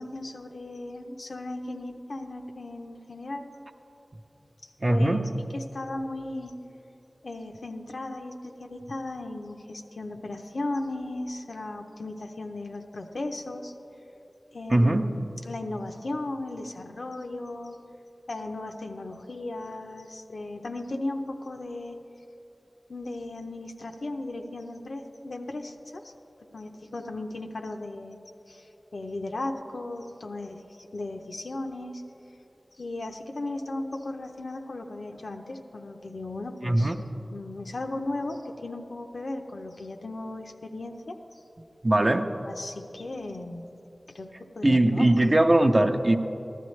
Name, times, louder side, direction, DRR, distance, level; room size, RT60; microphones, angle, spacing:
voice 1, 0.0-3.5 4.6-5.2 5.5-6.5 7.2-13.7 14.5-17.8 18.3-22.0 22.9-26.1 26.5-28.2 28.5-32.0 32.8-36.9 37.3-41.2 42.5-43.7 44.1-45.1, left 2 dB, 90° left, 4 dB, 0.7 m, -36 dB
voice 2, 4.8-5.3 14.7-15.1 36.6-37.0 41.8-42.3 44.6-46.2, right 1 dB, 40° right, 6 dB, 0.6 m, -21 dB
14.5 x 12.0 x 3.2 m, 3.0 s
wide cardioid pair, 55°, 0 cm